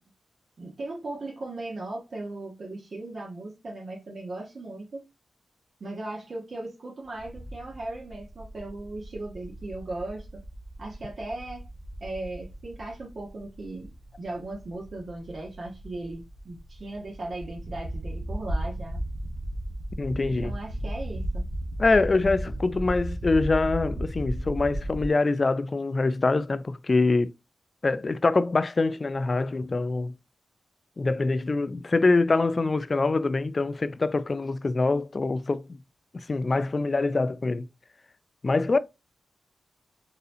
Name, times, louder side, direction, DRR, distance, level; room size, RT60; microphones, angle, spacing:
voice 1, 0.6-5.0 5.8-10.4 10.8-11.7 12.0-13.9 14.2-19.0 20.4-21.4, right 2 dB, 60° right, 1.0 m, -37 dB
sound 1, 7.1-25.1, right 1 dB, 85° right, 1.0 m, -35 dB
voice 2, 20.0-20.5 21.8-27.3 27.8-30.1 31.0-35.8 36.1-37.7 38.4-38.8, left 3 dB, 40° left, 0.3 m, -24 dB
4.0 x 2.7 x 2.6 m
cardioid pair, 65°, 0 cm